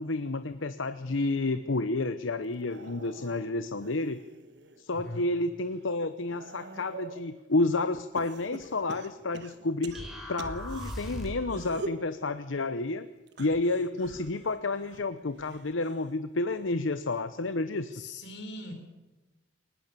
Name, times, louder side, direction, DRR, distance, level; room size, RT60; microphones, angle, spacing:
voice 1, 0.0-4.2 4.8-10.0 10.3-13.1 13.4-17.9, left 2 dB, 85° left, 11 dB, 0.9 m, -30 dB
sound 1, 2.5-4.8 5.3-7.3 8.2-10.9 11.4-12.1 13.3-16.2 16.5-16.9 18.1-18.2, right 2 dB, 60° right, 1.5 m, -45 dB
voice 2, 4.9-5.2 17.9-18.7, left 1 dB, 70° left, 4 dB, 4.8 m, -40 dB
sound 2, 9.9-11.5, equal, ahead, 4.8 m, -38 dB
22.0 x 19.5 x 6.9 m, 1.1 s
head